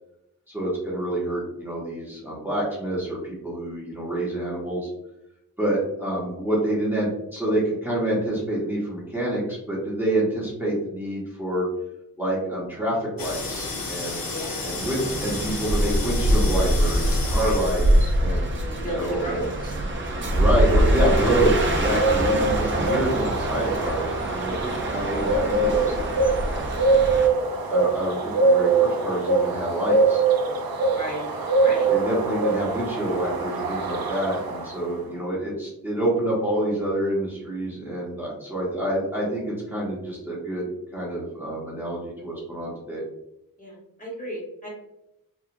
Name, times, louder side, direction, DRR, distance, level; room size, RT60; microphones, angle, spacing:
voice 1, 0.5-4.9 5.6-11.7 12.2-14.3 14.6-19.5 20.3-26.6 27.7-30.2 31.9-43.0, right 1 dB, 5° right, -7 dB, 0.9 m, -27 dB
sound 1, 13.2-18.2, left 1 dB, 80° left, 0.6 m, -28 dB
voice 2, 14.3-14.7 17.4-17.6 18.7-19.8 30.9-31.2 31.6-31.9 43.6-44.7, equal, 25° left, -5 dB, 1.0 m, -33 dB
sound 2, 14.8-27.3, right 1 dB, 35° right, 0.5 m, -24 dB
sound 3, 20.3-34.9, right 3 dB, 85° right, 0.5 m, -24 dB
2.8 x 2.4 x 2.5 m, 0.86 s
wide cardioid pair, 95°, 35 cm